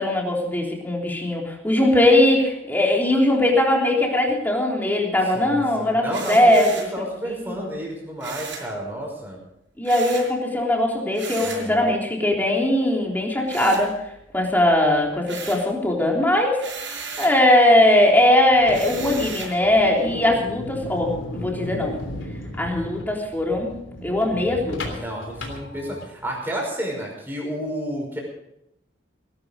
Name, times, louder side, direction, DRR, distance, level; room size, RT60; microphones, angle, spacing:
voice 1, 0.0-6.9 7.3-7.7 9.8-13.9 14.3-16.6 17.2-21.9 22.6-23.7 24.0-24.9, left 1 dB, 10° left, -1 dB, 3.5 m, -20 dB
voice 2, 5.3-6.7 6.9-9.4 11.4-11.9 25.0-28.2, equal, 10° right, -1 dB, 5.4 m, -31 dB
sound 1, 6.1-7.0 8.2-8.7 9.8-10.3 11.1-11.7 13.5-14.3 14.7-15.7 16.6-17.4 18.7-19.6, right 4 dB, 70° right, 5.7 m, -35 dB
sound 2, 18.5-26.3, left 1 dB, 80° left, 3.3 m, -35 dB
19.0 x 12.0 x 5.2 m, 0.82 s
head